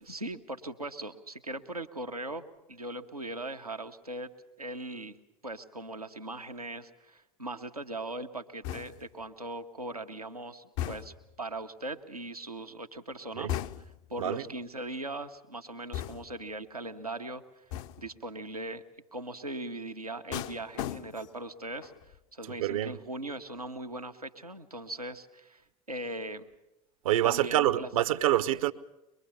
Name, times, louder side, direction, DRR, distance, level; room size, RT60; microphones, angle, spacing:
voice 1, 0.0-4.3 4.6-13.8 14.1-17.6 18.0-18.8 19.1-21.9 22.3-25.6 25.9-26.5 27.2-27.9, right 2 dB, 90° right, 1.2 m, -39 dB
sound 1, 8.6-9.2 10.8-11.3 13.5-14.1 15.9-16.5 17.7-18.2 20.3-21.4 21.8-22.2, left 12 dB, 55° left, 0.8 m, -37 dB
voice 2, 22.6-22.9 27.0-28.7, right 13 dB, 65° right, 1.0 m, -26 dB
24.0 x 21.5 x 7.0 m
figure-of-eight pair, 75°, 19 cm